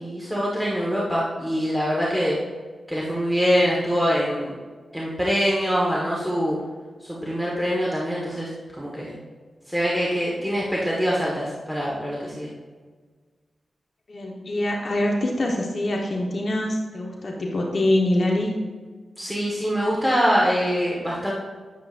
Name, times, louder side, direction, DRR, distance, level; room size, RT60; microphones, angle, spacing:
voice 1, 0.0-2.4 2.9-4.5 4.9-6.6 7.0-8.5 8.8-9.1 9.7-12.5 19.2-21.3, equal, ahead, -5 dB, 1.5 m, -24 dB
voice 2, 14.1-18.5, left 1 dB, 55° left, 0 dB, 1.2 m, -24 dB
10.5 x 7.4 x 2.6 m, 1.5 s
wide cardioid pair, 80°, 0 cm